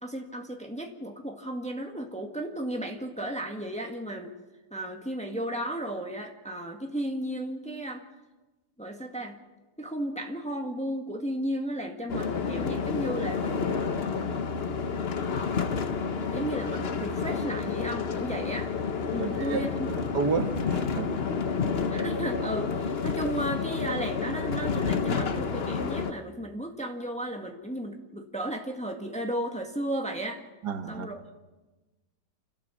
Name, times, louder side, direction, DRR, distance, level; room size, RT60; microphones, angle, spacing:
voice 1, 0.0-4.3 4.7-8.0 8.8-9.4 9.8-14.1 16.3-18.7 19.1-19.9 21.9-30.4 30.9-31.3, right 1 dB, 5° left, 2 dB, 1.7 m, -34 dB
sound 1, 12.1-26.1, left 5 dB, 45° left, 1.1 m, -30 dB
voice 2, 19.2-19.6 20.1-21.2 30.6-31.1, right 5 dB, 75° right, 7 dB, 2.0 m, -30 dB
29.0 x 13.0 x 7.3 m, 1.1 s
omnidirectional pair, 1.8 m